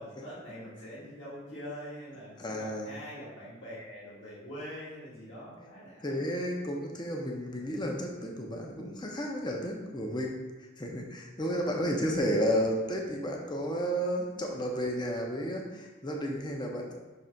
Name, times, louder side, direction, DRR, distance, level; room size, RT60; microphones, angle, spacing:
voice 1, 0.0-6.3, equal, 60° left, -8 dB, 1.5 m, -44 dB
voice 2, 2.4-3.0 6.0-10.4 10.8-16.9, equal, 20° left, 0 dB, 0.5 m, -32 dB
5.8 x 3.2 x 5.1 m, 1.2 s
head